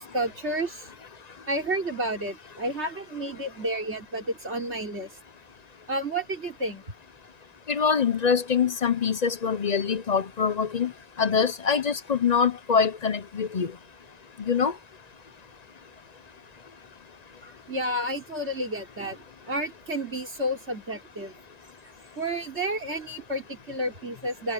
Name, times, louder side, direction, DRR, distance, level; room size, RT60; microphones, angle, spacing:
voice 1, 0.1-0.9 1.5-5.1 5.9-6.8 17.4-21.3 22.2-24.5, right 1 dB, 80° right, 4.4 m, -31 dB
voice 2, 7.7-10.9 11.2-13.7 14.5-14.7, left 6 dB, 45° left, 0.7 m, -24 dB
omnidirectional pair, 1.1 m